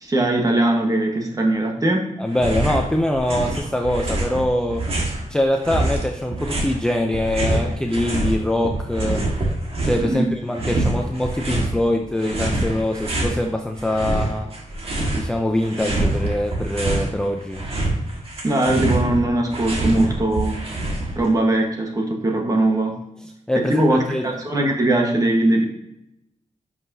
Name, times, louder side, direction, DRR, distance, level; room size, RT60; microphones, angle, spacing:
voice 1, 0.0-2.1 9.8-10.3 18.4-20.6 21.2-23.0 23.7-25.6, right 1 dB, 25° right, 1 dB, 1.3 m, -20 dB
voice 2, 2.2-4.9 5.3-9.2 9.8-14.5 15.1-17.6 23.5-24.3, left 1 dB, 5° left, 2 dB, 0.5 m, -23 dB
sound 1, 2.3-2.9 3.1-5.2 5.6-8.3 8.6-10.1 10.5-11.7 12.2-13.4 13.8-15.3 15.6-17.1 17.4-21.3, right 2 dB, 45° right, 1.7 m, -25 dB
10.5 x 5.7 x 2.7 m, 0.86 s
wide cardioid pair, 175°, 13 cm